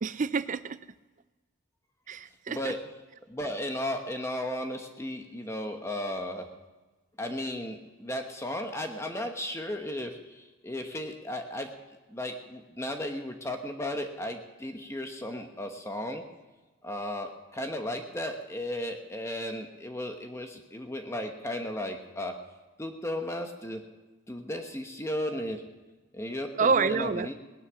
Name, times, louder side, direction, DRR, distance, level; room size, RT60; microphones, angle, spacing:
voice 1, 0.0-0.8 2.1-2.7 26.6-27.3, right 5 dB, 35° right, 15 dB, 0.4 m, -27 dB
voice 2, 2.5-2.8 3.3-6.5 7.2-11.7 12.1-16.2 16.8-22.3 22.8-23.8 24.3-25.6 26.1-27.3, left 1 dB, 15° left, 4 dB, 1.0 m, -35 dB
18.5 x 10.5 x 6.2 m, 1.2 s
head